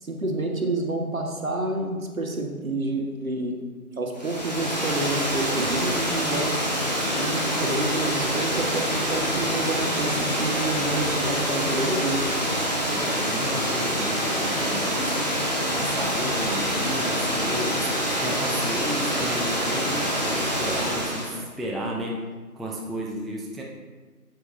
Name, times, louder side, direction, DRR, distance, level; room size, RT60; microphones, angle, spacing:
voice 1, 0.0-3.6 4.0-6.6 7.2-12.2, right 2 dB, 60° right, 2 dB, 1.3 m, -28 dB
Water, 4.2-21.4, equal, 30° left, 1.0 m, -26 dB
voice 2, 12.9-15.3 15.8-17.9 18.2-22.2 22.5-23.6, equal, ahead, -3 dB, 0.4 m, -33 dB
7.9 x 7.7 x 2.5 m, 1.4 s
figure-of-eight pair, 170°, 46 cm